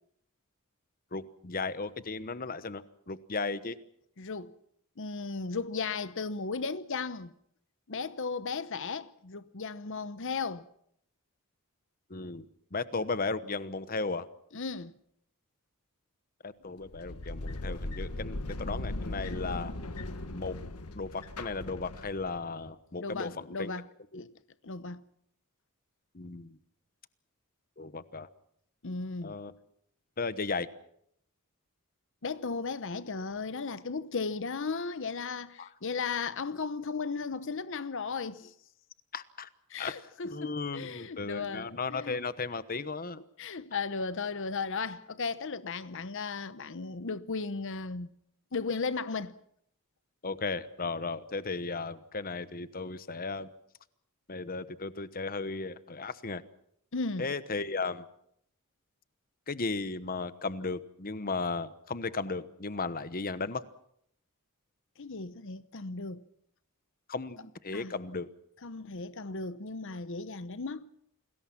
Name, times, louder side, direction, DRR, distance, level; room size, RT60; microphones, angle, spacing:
voice 1, 1.1-3.8 12.1-12.5 12.7-14.3 16.4-19.7 20.3-20.6 20.9-23.7 24.1-24.2 26.1-26.6 27.8-28.3 29.2-29.5 30.2-30.7 35.6-35.7 39.1-39.5 39.8-40.0 40.3-43.2 50.2-53.5 54.3-56.4 57.2-58.1 59.5-63.6 67.1-68.3, left 4 dB, 40° left, 1.1 m, -35 dB
voice 2, 4.2-4.5 5.0-7.3 7.9-10.7 14.5-14.9 23.0-23.9 24.1-24.3 24.6-25.0 28.8-29.4 32.2-38.5 39.7-42.2 43.4-48.1 48.5-49.4 56.9-57.3 65.0-66.2 67.7-67.9 68.6-70.9, left 4 dB, 60° left, 0.9 m, -35 dB
sound 1, 16.8-22.4, left 1 dB, 90° left, 1.5 m, -38 dB
28.5 x 20.5 x 6.0 m
head